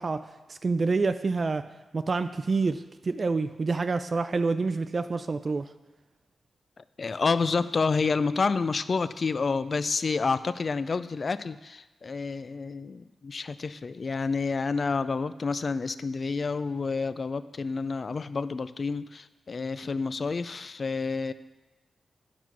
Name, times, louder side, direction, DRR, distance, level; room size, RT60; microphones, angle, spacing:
voice 1, 0.0-1.7 1.9-5.7, right 4 dB, 45° right, 10 dB, 0.4 m, -27 dB
voice 2, 6.8-21.3, left 4 dB, 50° left, 14 dB, 0.3 m, -29 dB
9.1 x 6.1 x 6.0 m, 1.1 s
cardioid pair, 80°, 0 cm